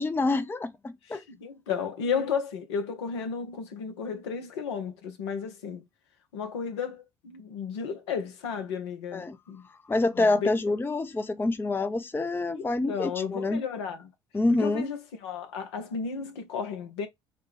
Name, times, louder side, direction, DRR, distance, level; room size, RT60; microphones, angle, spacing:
voice 1, 0.0-1.2 9.1-9.4 9.9-13.6 14.3-14.9, left 2 dB, 15° left, 0.5 m, -27 dB
voice 2, 1.1-5.8 6.3-9.7 10.2-10.5 12.5-14.1 14.6-17.1, left 6 dB, 75° left, 0.8 m, -33 dB
6.6 x 2.2 x 3.3 m
figure-of-eight pair, 55°, 14 cm